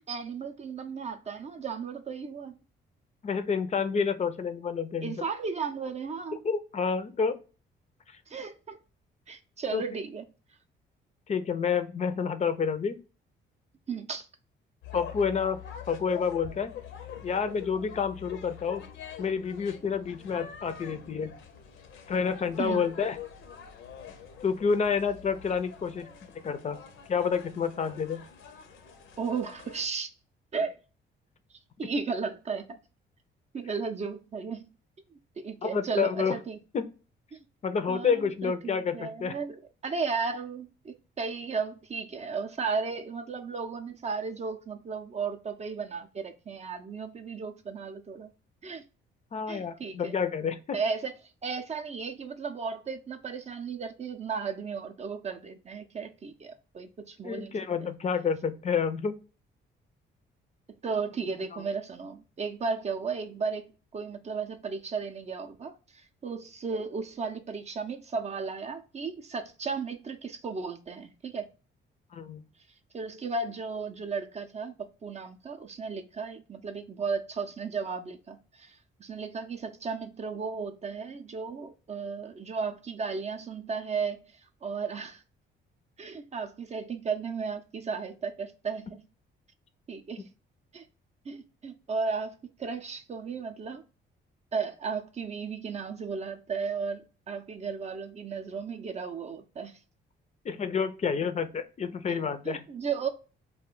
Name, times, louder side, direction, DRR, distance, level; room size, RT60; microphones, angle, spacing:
voice 1, 0.1-2.5 5.0-6.4 8.3-8.8 9.3-10.2 13.9-14.3 22.6-22.8 29.2-30.1 30.5-30.8 31.8-32.8 33.5-34.6 35.4-36.6 37.3-37.4 37.9-48.3 48.6-48.8 49.5-50.1 50.7-51.1 51.4-57.5 57.8-57.9 60.8-71.5 72.9-84.2 84.6-85.2 86.0-89.0 89.9-90.2 90.7-90.8 91.3-93.8 94.5-99.8 102.1-102.2 102.4-103.1, right 5 dB, 35° right, 0.5 m, -35 dB
voice 2, 3.2-5.1 6.3-7.4 9.7-9.8 11.3-13.0 14.9-15.6 15.9-16.7 17.2-18.8 19.2-21.3 22.1-23.2 24.4-26.1 26.4-26.8 27.1-28.2 35.6-36.4 36.7-36.8 37.6-39.4 49.3-50.8 57.2-59.2 61.5-61.6 72.1-72.4 100.4-102.6, left 6 dB, 35° left, 0.4 m, -29 dB
sound 1, 14.8-29.9, left 7 dB, 80° left, 0.6 m, -45 dB
2.4 x 2.2 x 3.7 m
cardioid pair, 90°, 20 cm